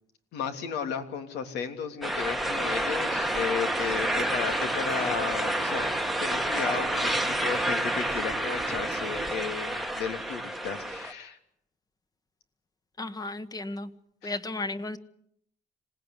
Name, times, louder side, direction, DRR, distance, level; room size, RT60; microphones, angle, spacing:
voice 1, 0.3-11.4 14.2-14.4, left 7 dB, 80° left, 7 dB, 3.4 m, -34 dB
sound 1, 2.0-11.1, right 1 dB, ahead, 1.4 m, -29 dB
sound 2, 2.5-9.3, right 7 dB, 40° right, 1.2 m, -43 dB
voice 2, 13.0-13.9 14.2-15.0, left 2 dB, 20° left, 11 dB, 1.5 m, -34 dB
26.0 x 18.5 x 9.9 m, 0.73 s
cardioid pair, 110°, 17 cm